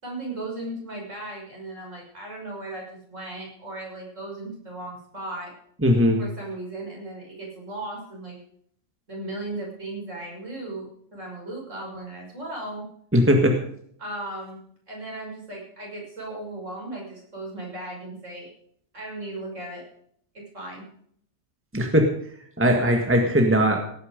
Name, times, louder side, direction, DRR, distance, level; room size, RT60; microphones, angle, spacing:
voice 1, 0.0-5.5 6.2-8.4 9.1-12.9 14.0-14.6 14.9-18.5 18.9-19.8 20.3-20.8, right 2 dB, 75° right, -2 dB, 6.3 m, -36 dB
voice 2, 5.8-6.2 13.1-13.6 21.7-22.1 22.6-23.8, equal, 10° right, 3 dB, 1.7 m, -19 dB
17.5 x 9.7 x 5.2 m, 0.65 s
omnidirectional pair, 1.3 m